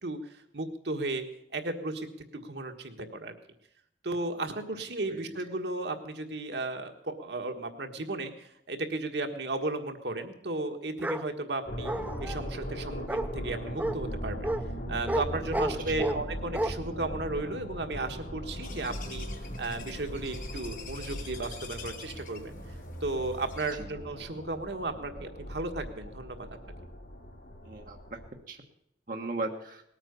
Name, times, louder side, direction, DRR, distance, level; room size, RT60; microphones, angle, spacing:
voice 1, 0.0-1.2 1.5-3.3 4.0-11.9 12.2-14.5 14.9-19.3 19.6-22.5 23.0-26.5, right 2 dB, 75° right, 5 dB, 1.6 m, -34 dB
Bark, 11.0-11.2 11.8-12.4 13.1-13.3 13.8-14.0 14.4-14.6 15.1-15.2 15.5-16.2 16.5-16.7, right 1 dB, 10° right, 0.5 m, -30 dB
sound 1, 11.7-28.3, equal, 65° left, 3.1 m, -39 dB
voice 2, 15.7-16.1 23.8-23.9 27.6-28.2 28.5-28.6 29.1-29.8, right 2 dB, 50° right, 2 dB, 1.3 m, -37 dB
sound 2, 18.6-23.7, left 6 dB, 45° left, 1.6 m, -47 dB
19.0 x 8.9 x 6.9 m, 0.77 s
head